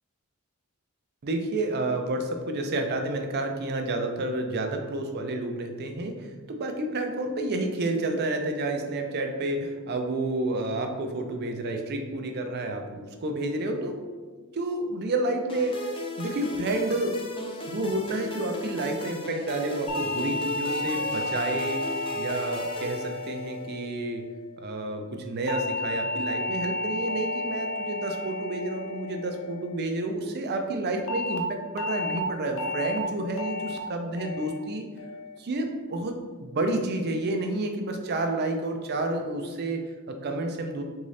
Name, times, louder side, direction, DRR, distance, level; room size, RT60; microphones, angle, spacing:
voice 1, 1.2-14.0 14.5-17.2 17.7-21.8 22.2-24.2 24.6-34.9 35.4-40.8, right 2 dB, 50° right, 4 dB, 0.4 m, -30 dB
sound 1, 15.5-23.8, left 1 dB, 25° left, 0.5 m, -37 dB
sound 2, 19.9-24.3 25.5-29.9 31.1-31.4 31.8-32.2 32.6-33.0 33.4-33.8 34.2-34.6 35.0-35.4, left 2 dB, 75° left, 0.5 m, -32 dB
3.6 x 2.7 x 3.2 m, 1.4 s
head